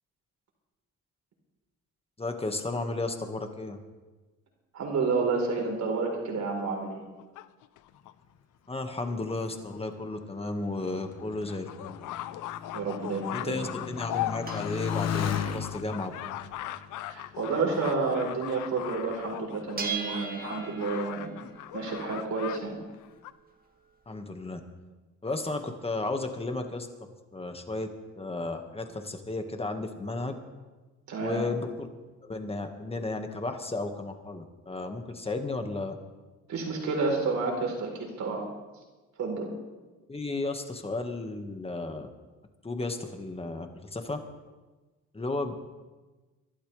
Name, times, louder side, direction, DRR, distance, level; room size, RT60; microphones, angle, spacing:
voice 1, 2.2-3.8 8.7-12.0 13.3-16.4 24.0-24.6 25.2-26.9 27.3-27.9 28.2-30.4 31.2-31.9 32.2-36.0 40.1-42.1 42.6-44.2 45.1-45.5, left 2 dB, 20° left, 5 dB, 1.7 m, -33 dB
voice 2, 4.7-7.1 12.7-13.7 17.1-21.4 21.7-22.8 31.1-31.4 36.5-38.5 39.2-39.5, right 4 dB, 65° right, 0 dB, 4.2 m, -30 dB
sound 1, 6.5-8.1 8.9-9.0 9.3-9.4 9.7-9.8 10.1-10.2 10.8-22.6 22.9-23.3, left 14 dB, 85° left, 0.6 m, -39 dB
Motorcycle, 9.3-18.3 19.0-19.6, left 8 dB, 55° left, 1.1 m, -37 dB
sound 2, 13.0-18.5 18.8-18.9 19.2-24.1, right 6 dB, 30° right, 1.9 m, -43 dB
24.5 x 12.0 x 3.4 m, 1.2 s
cardioid pair, 90°, 30 cm